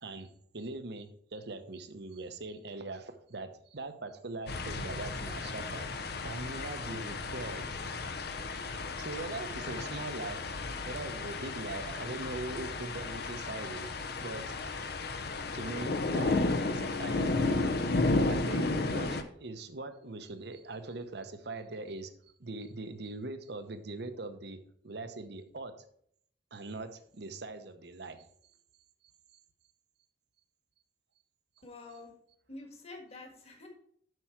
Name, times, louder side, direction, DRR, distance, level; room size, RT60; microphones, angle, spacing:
voice 1, 0.0-5.9 6.2-7.7 9.0-10.4 10.8-13.9 14.2-14.8 15.5-17.2 18.3-22.1 22.4-24.6 24.8-25.7 26.5-28.3, right 2 dB, 65° right, 9 dB, 0.9 m, -41 dB
sound 1, 4.5-19.2, left 3 dB, 60° left, 0.7 m, -33 dB
voice 2, 31.6-32.1 32.5-33.7, left 2 dB, 35° left, 3 dB, 1.7 m, -47 dB
7.9 x 6.1 x 4.6 m, 0.66 s
head